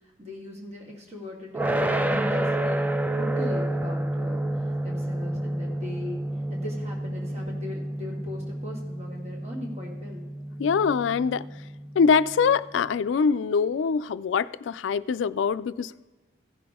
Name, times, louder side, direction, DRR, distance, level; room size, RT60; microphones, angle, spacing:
voice 1, 0.2-4.5 4.8-6.2 6.5-10.3, left 2 dB, 35° right, -1 dB, 1.9 m, -39 dB
sound 1, 1.5-12.5, right 1 dB, 10° right, 0.3 m, -29 dB
voice 2, 10.6-11.4 12.0-15.9, left 6 dB, 85° left, 16 dB, 0.3 m, -23 dB
16.0 x 6.0 x 3.6 m, 1.2 s
head